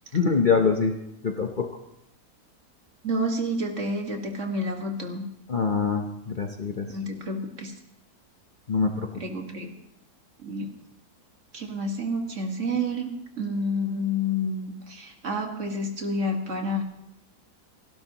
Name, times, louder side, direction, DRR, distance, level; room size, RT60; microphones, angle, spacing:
voice 1, 0.1-1.0 1.2-1.7 5.5-6.9 8.7-9.1, left 5 dB, 40° left, 3 dB, 0.9 m, -24 dB
voice 2, 3.0-5.2 6.9-7.7 9.1-9.7 10.4-10.7 11.5-16.8, equal, 50° right, 3 dB, 2.0 m, -29 dB
30.0 x 11.5 x 3.0 m, 0.80 s
omnidirectional pair, 1.7 m